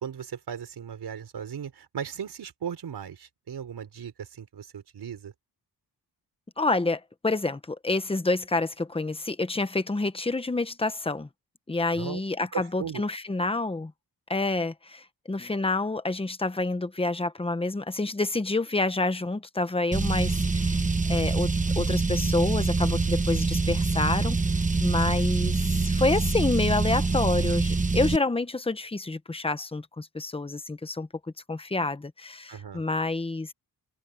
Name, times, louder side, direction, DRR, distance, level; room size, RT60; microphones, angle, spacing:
voice 1, 0.0-5.3 11.9-12.2 12.5-13.0 32.5-32.8, right 8 dB, 75° right, 4.8 m, -37 dB
voice 2, 6.6-11.3 11.7-13.9 14.3-20.8 21.1-24.4 24.8-31.1 31.5-33.5, left 2 dB, 15° left, 1.0 m, -28 dB
Car, 19.9-28.2, right 3 dB, 20° right, 1.0 m, -25 dB
open air
wide cardioid pair, 165°, 39 cm